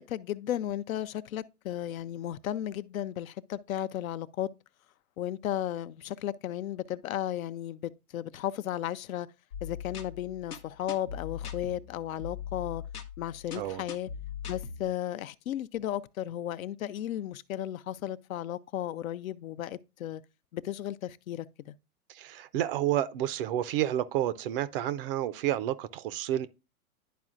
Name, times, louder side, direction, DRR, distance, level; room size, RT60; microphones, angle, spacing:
voice 1, 0.0-4.5 5.2-9.3 9.6-12.8 13.2-14.1 14.5-20.2 20.5-21.5, left 12 dB, 65° left, 0.6 m, -34 dB
sound 1, 9.5-14.9, left 7 dB, 90° left, 0.9 m, -41 dB
voice 2, 22.1-26.5, right 12 dB, 40° right, 0.5 m, -30 dB
11.0 x 4.2 x 2.4 m
hypercardioid pair, 110°, 44 cm